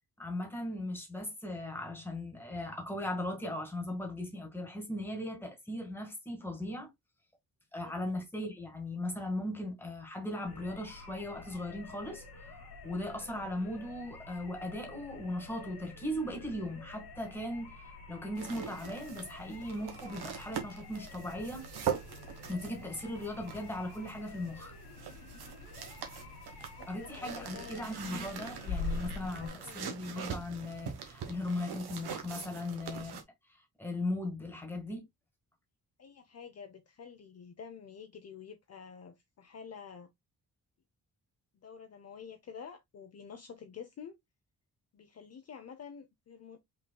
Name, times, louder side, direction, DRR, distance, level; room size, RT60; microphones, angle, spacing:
voice 1, 0.2-6.9 7.7-17.7 18.1-21.7 22.5-24.8 26.9-33.2 33.8-35.0, left 1 dB, 5° left, 1.7 m, -38 dB
voice 2, 7.8-8.2 26.5-27.9 29.4-30.0 36.0-40.1 41.6-44.2 44.9-46.6, left 6 dB, 40° left, 0.7 m, -49 dB
sound 1, 10.5-29.5, left 3 dB, 85° left, 2.0 m, -46 dB
sound 2, 18.4-33.2, right 8 dB, 85° right, 1.4 m, -43 dB
5.4 x 3.9 x 2.2 m
wide cardioid pair, 165°, 38 cm